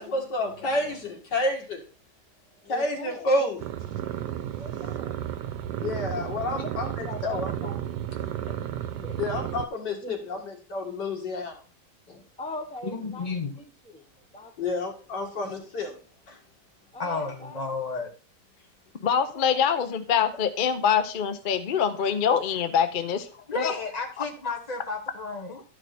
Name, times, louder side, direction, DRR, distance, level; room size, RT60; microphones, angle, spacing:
voice 1, 0.0-1.8 2.7-3.7 5.8-7.5 9.2-11.6 12.1-12.2 14.6-15.9 16.3-16.4, left 1 dB, 85° left, 0 dB, 2.8 m, -29 dB
voice 2, 0.6-0.9 2.6-3.3 4.5-5.2 6.5-7.8 8.2-8.5 8.7-9.2 9.9-10.4 12.4-13.3 13.5-13.7 13.9-14.0 14.3-14.5 16.9-17.6 19.1-19.6, left 1 dB, 5° left, 5 dB, 0.8 m, -41 dB
sound 1, 3.6-9.7, right 11 dB, 80° right, 1.2 m, -33 dB
voice 3, 12.8-13.5 17.0-18.1 23.5-25.6, left 3 dB, 25° left, 1 dB, 1.6 m, -32 dB
voice 4, 19.0-23.3 23.6-23.7, left 7 dB, 55° left, 9 dB, 0.5 m, -24 dB
12.5 x 5.3 x 4.2 m, 0.38 s
omnidirectional pair, 1.8 m